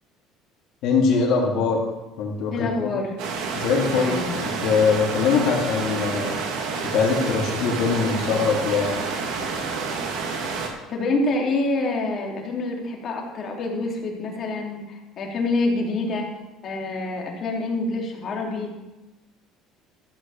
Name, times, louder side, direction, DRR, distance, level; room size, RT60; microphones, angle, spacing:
voice 1, 0.8-1.8 2.2-2.9 3.5-6.3 6.9-9.0, left 5 dB, 65° left, -2 dB, 3.3 m, -22 dB
voice 2, 2.5-3.1 3.9-4.3 10.9-16.3 16.6-18.7, left 2 dB, 40° left, 0 dB, 2.7 m, -26 dB
sound 1, 3.2-10.7, right 4 dB, 75° right, 2.2 m, -29 dB
14.0 x 5.7 x 7.0 m, 1.0 s
cardioid pair, 135°, 0 cm